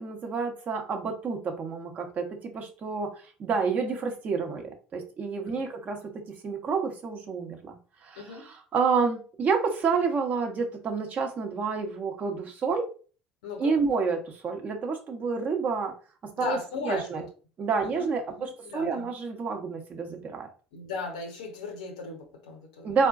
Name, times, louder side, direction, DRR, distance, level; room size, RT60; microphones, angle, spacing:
voice 1, 0.0-12.9 13.6-16.0 16.4-16.6 16.8-17.2 17.6-20.5 22.8-23.1, right 5 dB, 40° right, 0.7 m, -29 dB
voice 2, 8.2-8.5 13.4-13.8 16.4-17.3 17.8-19.1 20.7-23.0, left 4 dB, 75° left, 0.7 m, -37 dB
3.7 x 2.1 x 2.4 m
hypercardioid pair, 65°, 4 cm